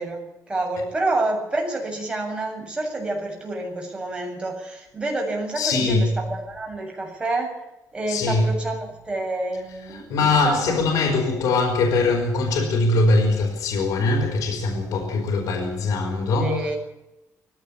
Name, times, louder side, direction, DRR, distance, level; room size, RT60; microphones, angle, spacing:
voice 1, 0.0-7.5 7.9-11.0 16.4-16.7, right 2 dB, 15° right, 7.5 m, -28 dB
voice 2, 5.6-6.1 8.1-8.5 9.9-16.6, left 3 dB, 70° left, 4.3 m, -22 dB
19.5 x 16.5 x 8.5 m
cardioid pair, 165°, 6 cm